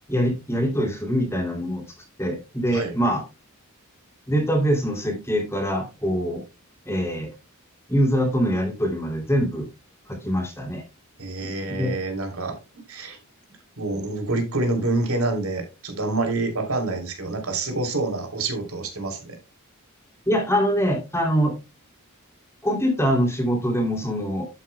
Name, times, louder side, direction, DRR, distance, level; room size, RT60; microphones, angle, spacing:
voice 1, 0.1-1.8 2.2-3.2 4.3-6.4 6.9-7.3 7.9-9.7 10.1-10.8 11.4-11.9 20.3-21.5 22.6-24.5, equal, 10° left, 3 dB, 2.8 m, -24 dB
voice 2, 11.2-12.6 12.9-13.2 13.8-19.4, right 2 dB, 75° right, 4 dB, 3.2 m, -27 dB
11.5 x 8.3 x 2.2 m, 0.27 s
head